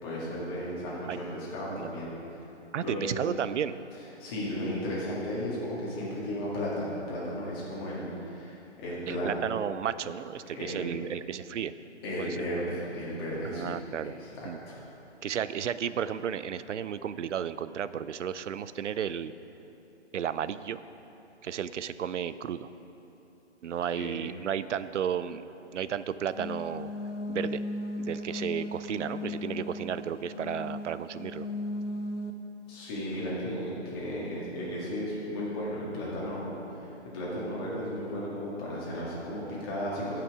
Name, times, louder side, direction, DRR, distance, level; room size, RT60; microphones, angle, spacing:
voice 1, 0.0-2.4 2.8-3.1 4.2-9.3 10.5-10.8 12.0-13.7 14.0-14.8 23.9-24.1 32.7-36.5 36.8-40.2, equal, 20° left, -6 dB, 1.9 m, -34 dB
voice 2, 2.7-3.7 9.1-11.7 12.2-12.4 13.4-14.1 14.4-14.6 15.2-19.3 20.1-20.8 21.4-22.7 23.6-25.4 25.7-26.9 27.3-27.6 28.0-31.5, right 8 dB, 85° right, 14 dB, 0.5 m, -33 dB
sound 1, 26.3-32.3, left 2 dB, 85° left, 1.0 m, -36 dB
15.0 x 5.9 x 4.7 m, 3.0 s
hypercardioid pair, 165°, 35 cm